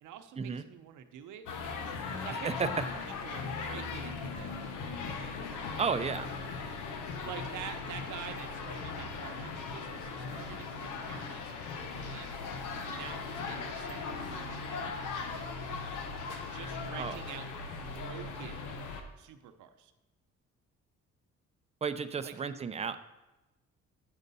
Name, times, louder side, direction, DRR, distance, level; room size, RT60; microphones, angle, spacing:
voice 1, 0.0-1.5 2.1-4.6 7.2-12.3 12.8-15.6 16.5-17.5 17.8-18.7 19.2-19.9 22.2-22.3, right 9 dB, 80° right, 8 dB, 0.8 m, -47 dB
sound 1, 1.5-19.0, left 4 dB, 90° left, 0.9 m, -38 dB
voice 2, 5.8-6.3 17.0-17.2 21.8-23.0, right 6 dB, 20° right, 9 dB, 0.5 m, -33 dB
9.6 x 6.5 x 4.1 m, 1.0 s
cardioid pair, 90°, 30 cm